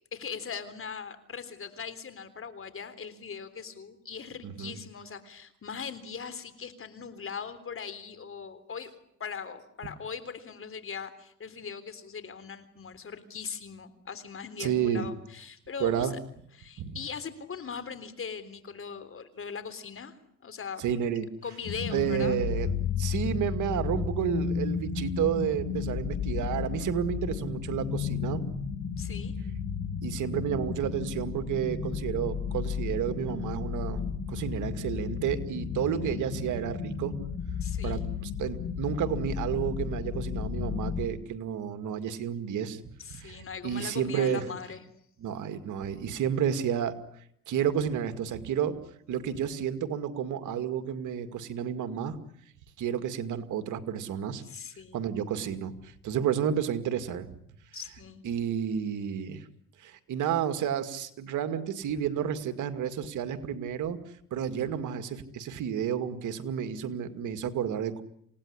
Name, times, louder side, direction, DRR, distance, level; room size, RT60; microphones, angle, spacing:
voice 1, 0.1-8.9 9.2-16.2 16.6-20.2 20.4-20.8 21.4-22.4 29.0-29.3 37.6-38.0 43.0-44.8 54.4-55.0 57.7-58.2, left 6 dB, 45° left, 12 dB, 3.7 m, -40 dB
voice 2, 4.4-4.7 14.6-15.1 15.8-16.1 16.8-17.0 20.8-21.3 21.9-22.7 23.0-28.4 30.0-37.1 37.8-42.8 43.2-43.4 43.6-44.4 45.2-47.0 47.5-48.8 49.1-52.2 52.8-54.4 54.9-57.3 58.2-59.5 59.8-64.0 64.3-68.0, right 9 dB, 80° right, 10 dB, 2.3 m, -31 dB
sound 1, 21.6-41.1, left 6 dB, 65° left, 5.2 m, -33 dB
28.0 x 18.0 x 9.9 m, 0.71 s
cardioid pair, 90°, 30 cm